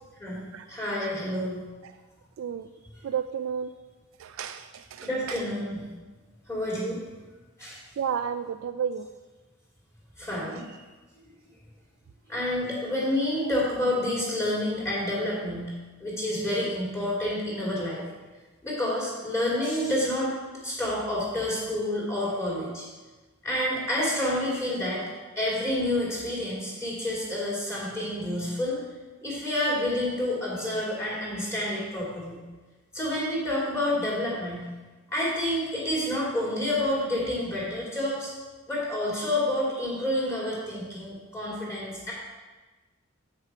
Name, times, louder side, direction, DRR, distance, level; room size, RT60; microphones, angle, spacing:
voice 1, 0.2-1.6 5.0-5.9 6.5-7.0 7.6-7.8 10.2-10.8 12.3-15.7 16.0-18.0 18.6-20.3 20.6-22.8 23.4-25.0 25.4-28.8 29.2-32.4 32.9-34.7 35.1-38.3 38.7-42.1, left 1 dB, 15° left, -6 dB, 2.8 m, -29 dB
voice 2, 2.4-2.7 3.0-3.7 4.2-5.4 8.0-9.1, right 7 dB, 75° right, 9 dB, 0.3 m, -32 dB
7.5 x 6.4 x 4.7 m, 1.3 s
head